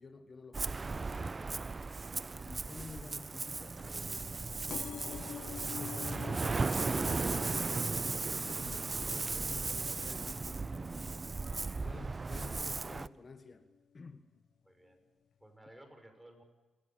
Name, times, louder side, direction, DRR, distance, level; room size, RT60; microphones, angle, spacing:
voice 1, 0.0-1.7 2.4-5.3 5.8-11.1 11.6-13.7 13.9-14.3, left 4 dB, 40° left, 9 dB, 1.4 m, -51 dB
Ocean, 0.5-13.1, right 3 dB, 35° right, 0.6 m, -36 dB
sound 1, 4.7-11.9 12.4-12.9 13.7-13.8 14.1-14.2 14.4-14.5, left 8 dB, 65° left, 0.7 m, -48 dB
voice 2, 11.7-12.5 14.6-15.0 15.4-16.4, right 1 dB, 10° right, 6 dB, 5.9 m, -58 dB
29.0 x 15.5 x 7.3 m, 1.2 s
supercardioid pair, 55°, 0 cm